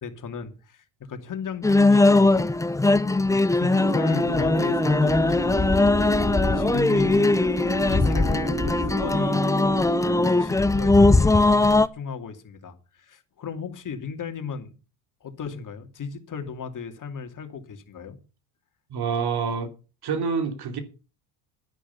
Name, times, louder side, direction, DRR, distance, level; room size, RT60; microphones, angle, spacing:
voice 1, 0.0-2.5 3.3-5.6 6.3-7.4 7.9-9.4 10.1-14.7 15.2-18.2, left 6 dB, 40° left, 2.6 m, -36 dB
sound 1, 1.6-11.9, left 2 dB, 5° left, 0.7 m, -20 dB
sound 2, 3.8-10.3, right 2 dB, 25° right, 4.6 m, -31 dB
voice 2, 18.9-19.7 20.0-20.8, right 5 dB, 55° right, 3.0 m, -27 dB
12.0 x 10.0 x 5.8 m
supercardioid pair, 80°, 47 cm